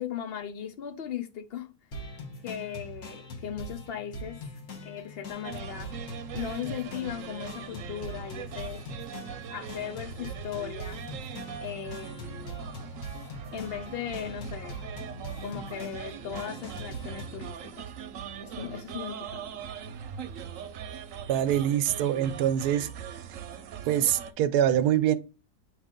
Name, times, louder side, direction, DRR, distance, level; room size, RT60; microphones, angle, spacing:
voice 1, 0.0-1.7 2.4-4.4 4.8-6.1 6.3-8.9 9.5-11.0 11.6-12.6 13.5-14.8 15.4-17.9 18.4-19.5, left 9 dB, 85° left, 0.5 m, -37 dB
sound 1, 1.9-17.5, left 1 dB, 65° left, 1.7 m, -42 dB
sound 2, 5.4-24.3, right 8 dB, 65° right, 1.0 m, -41 dB
voice 2, 21.3-22.9 23.1-23.2 23.9-25.2, right 11 dB, 85° right, 1.2 m, -24 dB
8.3 x 3.1 x 3.7 m
omnidirectional pair, 1.7 m